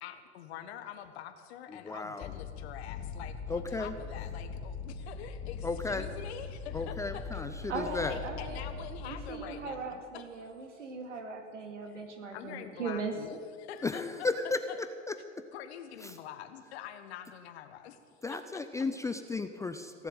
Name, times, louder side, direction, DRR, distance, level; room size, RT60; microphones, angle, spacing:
voice 1, 0.0-10.5 11.9-12.0 12.3-14.8 15.5-18.0 18.3-18.6, left 10 dB, 60° left, 8 dB, 1.5 m, -46 dB
voice 2, 1.9-2.3 3.5-3.9 5.6-6.1 6.7-8.2 13.8-14.6 16.0-16.1 18.2-20.1, left 3 dB, 10° left, 8 dB, 0.4 m, -34 dB
sound 1, 2.2-9.3, left 5 dB, 30° left, 1.1 m, -41 dB
voice 3, 7.7-8.6 9.0-13.1, right 4 dB, 80° right, 4 dB, 2.5 m, -39 dB
17.0 x 7.6 x 9.0 m, 2.2 s
hypercardioid pair, 95°, 36 cm